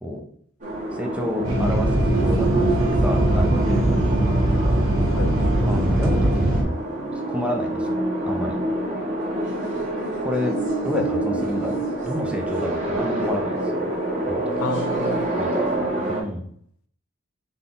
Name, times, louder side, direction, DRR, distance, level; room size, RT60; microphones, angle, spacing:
sound 1, 0.6-16.2, right 2 dB, 35° right, 1.5 m, -27 dB
voice 1, 0.9-2.5 3.0-3.9 5.7-6.7 7.3-8.6 10.2-10.6 10.8-13.5 14.3-14.4 15.4-16.5, left 1 dB, 5° right, 0.7 m, -30 dB
sound 2, 1.4-6.6, right 1 dB, 70° right, 1.2 m, -20 dB
voice 2, 10.9-11.4 14.6-15.3 15.8-16.1, left 5 dB, 80° left, 0.4 m, -31 dB
4.0 x 3.4 x 3.8 m
head